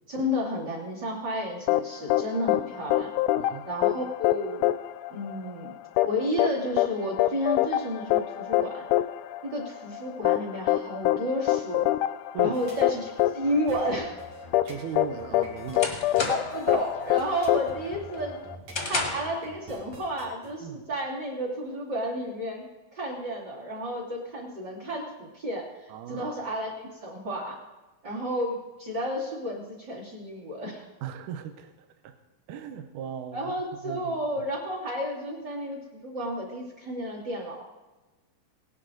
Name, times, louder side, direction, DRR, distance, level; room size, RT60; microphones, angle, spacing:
voice 1, 0.1-3.1 3.6-4.7 5.1-5.7 6.0-8.8 9.4-11.9 12.4-14.1 16.3-18.4 18.8-22.7 22.9-26.7 27.0-27.6 28.0-30.9 33.3-37.6, equal, 30° right, -2 dB, 3.0 m, -32 dB
sound 1, 1.7-18.6, left 15 dB, 85° left, 2.3 m, -26 dB
voice 2, 3.4-3.7 12.3-12.6 14.6-16.0 20.6-20.8 25.9-26.4 31.0-32.2 32.5-33.5 33.8-34.5, right 8 dB, 75° right, 7 dB, 2.1 m, -38 dB
sound 2, 12.5-20.5, right 1 dB, 55° right, 3.3 m, -46 dB
sound 3, 14.9-16.7 17.1-17.5 17.9-19.4, left 3 dB, 35° left, 1.1 m, -33 dB
18.0 x 11.0 x 3.9 m, 1.1 s
omnidirectional pair, 4.1 m